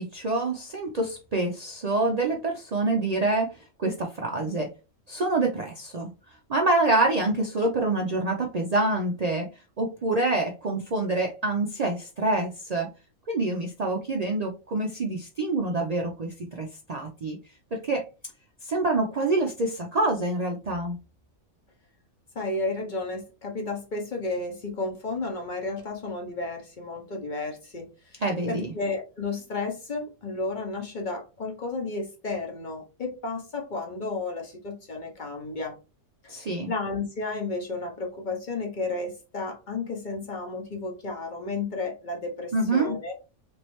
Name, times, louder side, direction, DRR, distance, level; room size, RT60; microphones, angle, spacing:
voice 1, 0.0-3.5 3.8-4.7 5.1-6.1 6.5-9.5 9.8-12.9 13.3-17.4 17.7-18.0 18.6-21.0 28.2-28.7 36.3-36.7 42.5-42.9, right 2 dB, 90° right, 0.3 m, -26 dB
voice 2, 22.3-27.8 28.1-28.2 28.5-35.7 36.2-36.3 36.7-43.1, left 3 dB, 40° left, 0.8 m, -32 dB
3.5 x 3.1 x 3.0 m
omnidirectional pair, 1.5 m